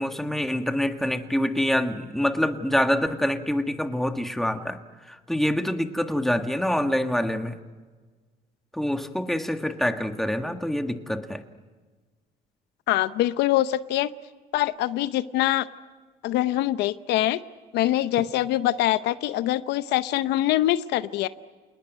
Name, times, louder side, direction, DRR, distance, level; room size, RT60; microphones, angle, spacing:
voice 1, 0.0-4.8 5.1-7.6 8.7-11.4, left 1 dB, ahead, 6 dB, 1.6 m, -26 dB
voice 2, 12.9-14.1 14.5-15.7 16.2-17.4 17.7-21.3, left 14 dB, 85° left, 14 dB, 0.8 m, -24 dB
28.0 x 19.5 x 9.4 m, 1.4 s
cardioid pair, 110°, 17 cm